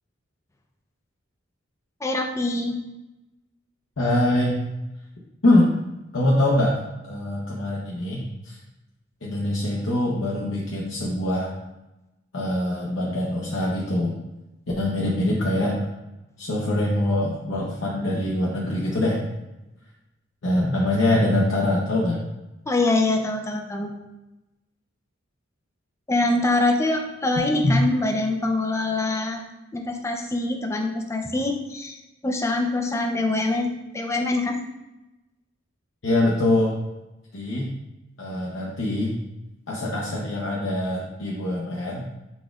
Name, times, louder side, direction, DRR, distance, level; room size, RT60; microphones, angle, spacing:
voice 1, 2.0-2.8 22.7-23.9 26.1-29.4 29.7-34.6, left 2 dB, 15° left, 3 dB, 0.3 m, -24 dB
voice 2, 4.0-4.6 5.4-5.7 6.1-8.6 9.2-11.5 12.3-14.2 14.8-15.8 16.4-19.2 20.4-22.2 27.6-27.7 36.0-36.8 37.3-37.7 38.2-39.2 39.7-42.0, left 1 dB, 65° left, -4 dB, 0.7 m, -23 dB
4.8 x 4.1 x 2.3 m, 1.0 s
head